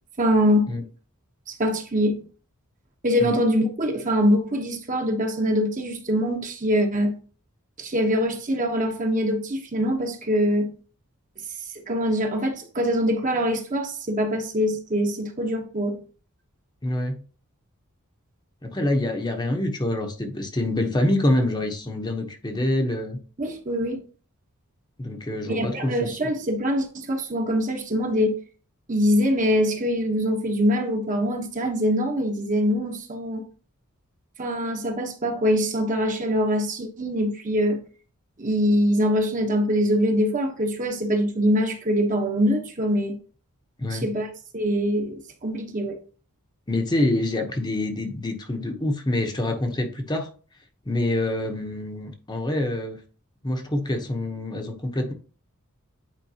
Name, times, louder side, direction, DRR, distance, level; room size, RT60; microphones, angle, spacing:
voice 1, 0.2-0.8 1.5-2.2 3.0-7.2 7.8-10.8 11.9-16.0 23.4-24.0 25.5-28.4 28.9-33.4 34.4-37.8 38.4-43.2 43.9-46.0, equal, 35° right, 1.1 m, -23 dB
voice 2, 16.8-17.2 18.6-23.2 25.0-26.3 43.8-44.1 46.7-50.3 50.9-53.0 53.4-55.1, left 1 dB, 20° left, 0.9 m, -26 dB
9.2 x 4.5 x 2.9 m
head